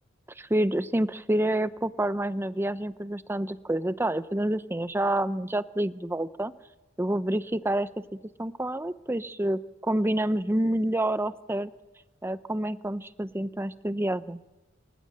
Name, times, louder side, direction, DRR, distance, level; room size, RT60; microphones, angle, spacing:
voice 1, 0.4-6.5 7.0-7.9 8.4-11.7 12.2-14.5, right 1 dB, 10° right, 14 dB, 0.7 m, -28 dB
26.5 x 15.0 x 7.8 m, 1.0 s
head